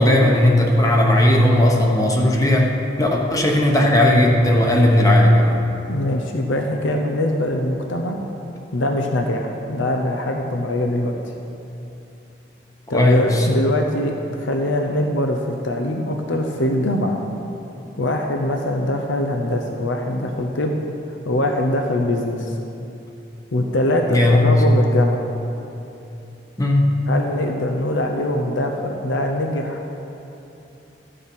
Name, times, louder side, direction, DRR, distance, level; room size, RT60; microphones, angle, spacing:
voice 1, 0.0-2.7 3.0-5.6 12.9-13.5 24.1-24.5 26.6-26.9, left 1 dB, 20° left, 0 dB, 0.9 m, -16 dB
voice 2, 5.9-8.2 8.7-11.1 12.9-17.2 18.0-20.8 21.2-22.6 23.5-25.2 27.1-29.8, left 1 dB, 85° left, 2 dB, 0.8 m, -22 dB
13.5 x 6.9 x 5.5 m, 2.9 s
head